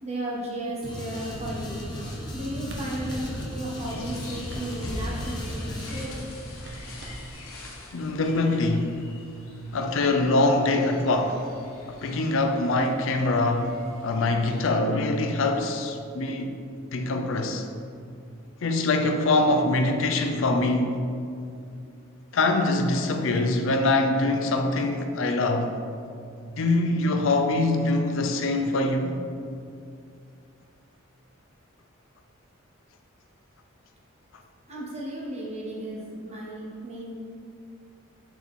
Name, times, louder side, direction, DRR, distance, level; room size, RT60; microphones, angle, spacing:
voice 1, 0.0-1.8 2.3-6.1 34.7-37.1, right 1 dB, 30° right, -5 dB, 1.1 m, -34 dB
sound 1, 0.8-6.1, left 1 dB, 20° left, 1.0 m, -36 dB
sound 2, 1.3-7.3, right 1 dB, 55° right, 0.8 m, -42 dB
sound 3, 3.9-14.7, left 1 dB, 90° left, 1.0 m, -43 dB
voice 2, 7.9-9.0 9.7-11.4 11.9-16.5 16.9-17.7 18.6-21.0 22.3-25.7 26.6-29.1, left 2 dB, 65° left, 5 dB, 0.5 m, -24 dB
5.9 x 4.5 x 3.6 m, 2.4 s
head